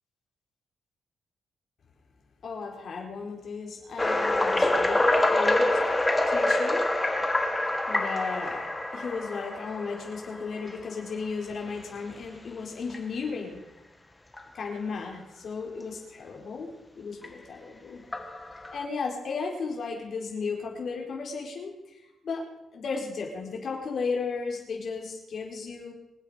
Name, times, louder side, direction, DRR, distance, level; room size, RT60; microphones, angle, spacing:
voice 1, 2.4-5.0 5.3-5.8 6.3-6.9 7.9-8.6 8.9-13.6 14.5-16.7 17.0-18.0 18.7-22.4 22.7-25.9, left 5 dB, 50° left, 0 dB, 4.2 m, -34 dB
sound 1, 4.0-10.8 11.5-11.7 12.2-12.3 12.9-13.0 14.3-14.4 17.2-17.3 18.1-18.8, left 1 dB, 10° left, 1.4 m, -26 dB
25.5 x 8.5 x 5.0 m, 0.93 s
wide cardioid pair, 155°, 0 cm